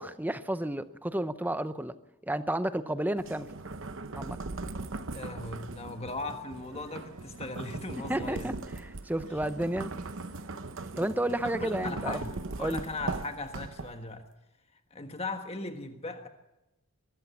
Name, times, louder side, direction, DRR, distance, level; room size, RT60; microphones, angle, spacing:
voice 1, 0.0-1.9 2.2-3.5 4.1-4.4 8.1-9.9 11.0-12.2 12.6-12.8, right 1 dB, 10° right, 12 dB, 0.7 m, -31 dB
sound 1, 3.2-14.2, right 3 dB, 55° right, 0.9 m, -39 dB
voice 2, 5.1-8.5 11.6-14.3 14.9-16.3, left 2 dB, 25° left, 6 dB, 1.4 m, -38 dB
sound 2, 6.2-11.5, right 3 dB, 90° right, 2.3 m, -58 dB
22.0 x 14.5 x 8.3 m, 0.97 s
head